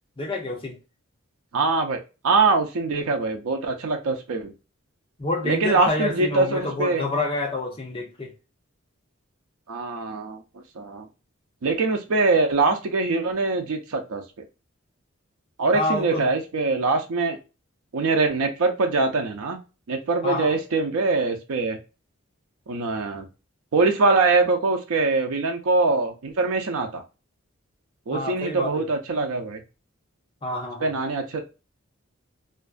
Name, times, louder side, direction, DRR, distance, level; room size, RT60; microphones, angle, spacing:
voice 1, 0.2-0.8 5.2-8.3 15.7-16.3 20.2-20.5 28.1-28.7 30.4-30.9, left 2 dB, 25° left, 0.6 m, -28 dB
voice 2, 1.5-4.5 5.4-7.0 9.7-10.4 10.8-11.1 11.6-14.2 15.6-17.4 17.9-19.6 19.9-21.8 22.7-23.3 23.7-27.0 28.1-29.6 30.8-31.4, right 3 dB, 90° right, 0.5 m, -23 dB
2.5 x 2.3 x 2.3 m
head